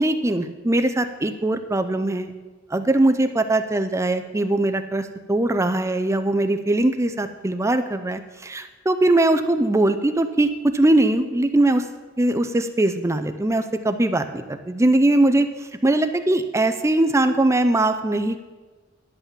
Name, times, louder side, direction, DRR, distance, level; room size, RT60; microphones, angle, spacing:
voice 1, 0.0-2.3 2.7-11.9 12.2-18.4, right 1 dB, 15° right, 9 dB, 0.5 m, -21 dB
11.0 x 5.7 x 7.3 m, 1.3 s
head